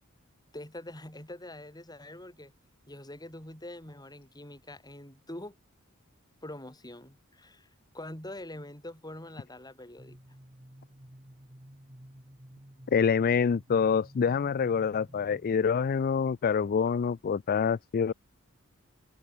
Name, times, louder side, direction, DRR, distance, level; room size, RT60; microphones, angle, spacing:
voice 1, 0.5-2.5 2.9-5.6 6.4-7.7 7.9-10.2, left 1 dB, 20° left, 7.7 m, -44 dB
sound 1, 10.0-15.6, equal, 25° right, 2.6 m, -52 dB
voice 2, 12.9-18.1, left 6 dB, 45° left, 0.4 m, -26 dB
head